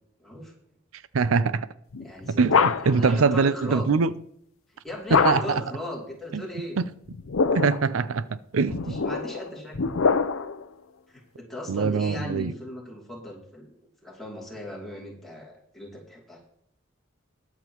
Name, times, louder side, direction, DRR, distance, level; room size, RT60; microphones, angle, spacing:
voice 1, 0.2-0.5 2.0-2.7 2.9-3.9 4.8-6.8 8.6-9.8 11.1-16.4, left 1 dB, ahead, 2.7 m, -38 dB
voice 2, 1.1-1.7 2.3-4.1 5.1-5.6 6.3-6.4 7.5-8.9 11.7-12.5, right 4 dB, 85° right, 0.5 m, -23 dB
sound 1, 1.9-3.1 5.1-5.7 7.1-7.9 8.7-10.6, left 5 dB, 80° left, 0.6 m, -24 dB
21.0 x 7.3 x 3.0 m
head